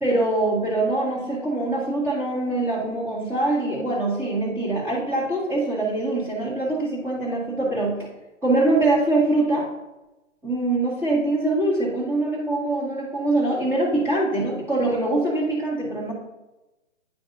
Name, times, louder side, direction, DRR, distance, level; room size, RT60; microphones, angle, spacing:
voice 1, 0.0-7.9 8.4-9.7 10.4-16.1, right 2 dB, 5° right, -5 dB, 1.6 m, -23 dB
9.5 x 5.1 x 2.6 m, 1.0 s
figure-of-eight pair, 135°, 38 cm